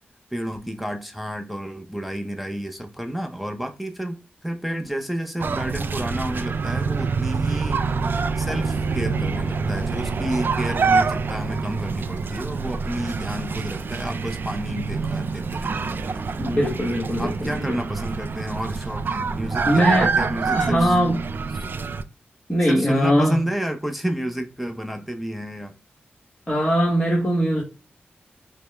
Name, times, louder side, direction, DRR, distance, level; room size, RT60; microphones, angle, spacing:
voice 1, 0.3-7.8 8.4-16.3 17.2-21.0 21.5-21.7 22.6-25.8, right 1 dB, ahead, 0.6 m, -30 dB
sound 1, 5.4-22.0, right 4 dB, 60° right, 0.4 m, -26 dB
voice 2, 16.4-17.8 19.6-20.1 20.5-21.2 22.5-23.4 26.5-27.6, equal, 20° left, 1.2 m, -21 dB
5.1 x 2.1 x 3.2 m
cardioid pair, 70°, 4 cm